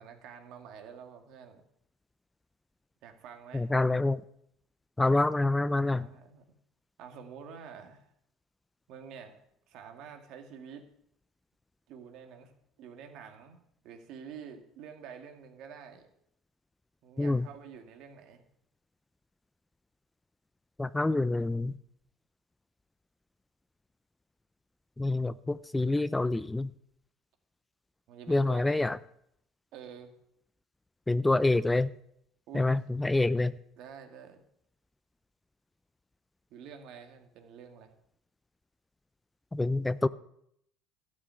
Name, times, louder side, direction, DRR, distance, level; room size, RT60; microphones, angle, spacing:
voice 1, 0.0-1.6 3.0-3.7 5.7-6.4 7.0-8.1 8.9-9.4 9.7-10.8 11.9-16.1 17.0-18.4 28.1-28.9 29.7-30.1 32.5-32.8 33.8-34.4 36.5-37.9, right 7 dB, 65° right, 2.1 m, -48 dB
voice 2, 3.5-4.2 5.0-6.1 17.2-17.5 20.8-21.7 25.0-26.7 28.3-29.0 31.1-31.9 32.5-33.5 39.5-40.1, left 2 dB, 10° left, 0.4 m, -27 dB
12.5 x 6.1 x 9.0 m
supercardioid pair, 100°, 0 cm